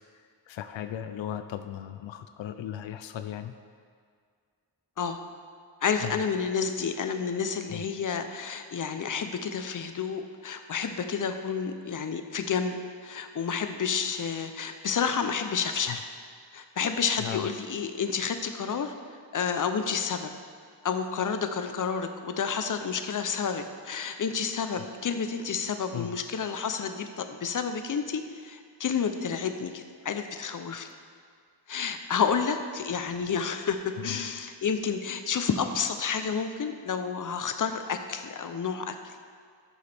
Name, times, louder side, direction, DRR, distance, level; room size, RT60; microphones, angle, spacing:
voice 1, 0.5-3.5 6.0-6.2 7.7-7.8 15.9-16.0 17.2-17.5 25.9-26.1 30.8-31.0 34.0-34.2, left 10 dB, 90° left, 9 dB, 0.6 m, -36 dB
voice 2, 5.8-12.8 13.0-16.1 16.5-18.9 19.3-20.3 20.8-30.9 31.7-39.1, left 6 dB, 45° left, 7 dB, 0.7 m, -30 dB
13.5 x 6.7 x 3.5 m, 2.1 s
cardioid pair, 85°, 44 cm